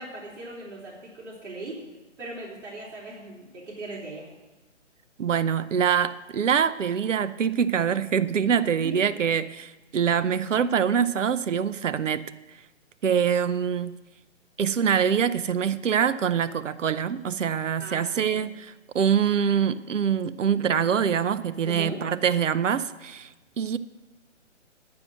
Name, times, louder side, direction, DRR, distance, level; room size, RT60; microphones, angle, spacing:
voice 1, 0.0-1.8 2.2-4.3 8.7-9.0 17.8-18.5 21.7-22.0, right 2 dB, 65° right, 3.3 m, -38 dB
voice 2, 5.2-12.2 13.0-14.0 14.6-23.8, right 7 dB, 80° right, 0.7 m, -24 dB
9.5 x 6.4 x 8.7 m
hypercardioid pair, 160°, 37 cm